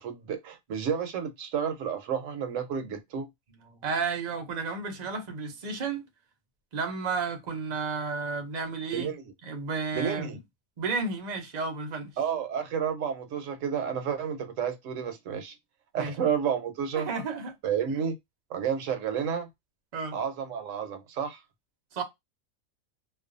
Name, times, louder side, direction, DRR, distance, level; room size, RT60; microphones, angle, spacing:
voice 1, 0.0-3.3 8.9-9.3 9.9-10.4 12.2-15.5 15.9-17.1 17.6-18.1 18.5-19.5 20.1-21.4, right 7 dB, 70° right, 0.9 m, -31 dB
voice 2, 3.7-6.1 6.7-9.1 9.4-10.4 10.8-12.1 15.9-16.2 16.9-17.6 19.9-20.2 21.9-22.0, right 4 dB, 45° right, 0.6 m, -32 dB
2.5 x 2.2 x 2.4 m
omnidirectional pair, 1.4 m